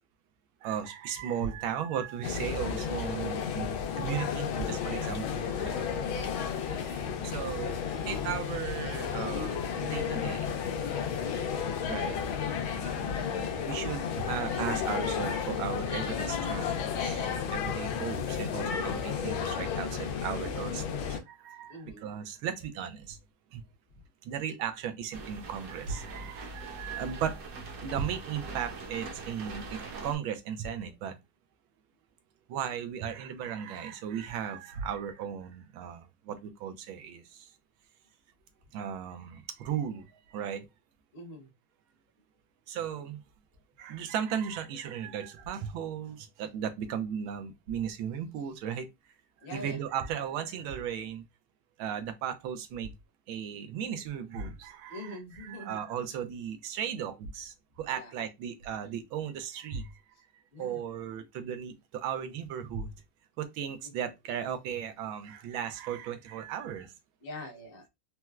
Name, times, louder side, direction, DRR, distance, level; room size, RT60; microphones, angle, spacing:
voice 1, 0.6-6.1 6.8-7.8 8.0-10.5 11.9-12.2 13.5-23.2 23.5-23.6 24.2-27.4 27.8-31.2 32.5-37.5 38.7-40.7 42.7-43.2 43.8-48.9 49.5-51.2 51.8-52.9 53.3-59.9 60.6-62.9 63.4-66.9, right 8 dB, 85° right, 1.4 m, -36 dB
sound 1, 2.2-21.2, left 7 dB, 85° left, 1.4 m, -32 dB
voice 2, 4.9-5.3 21.7-22.1 41.1-41.5 49.4-49.8 54.9-55.8 57.9-58.3 60.5-60.8 63.8-63.9 67.2-67.8, left 1 dB, 40° left, 0.8 m, -44 dB
sound 2, 25.1-30.2, right 3 dB, 60° right, 1.0 m, -42 dB
4.3 x 2.1 x 2.2 m
omnidirectional pair, 2.2 m